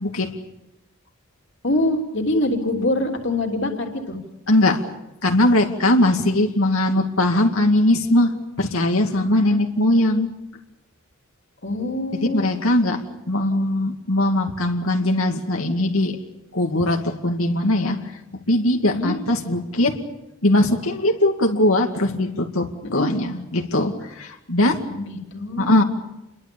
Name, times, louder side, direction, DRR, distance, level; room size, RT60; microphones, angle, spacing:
voice 1, 0.0-0.3 4.5-4.8 5.2-10.3 12.3-16.2 16.5-18.1 18.5-20.0 20.4-24.8 25.6-25.8, left 1 dB, 80° left, 3 dB, 2.3 m, -20 dB
voice 2, 1.6-4.2 11.6-12.5 18.8-19.1 22.8-23.1 24.9-25.8, left 1 dB, 55° left, 2 dB, 3.3 m, -24 dB
29.5 x 22.5 x 7.1 m, 0.92 s
head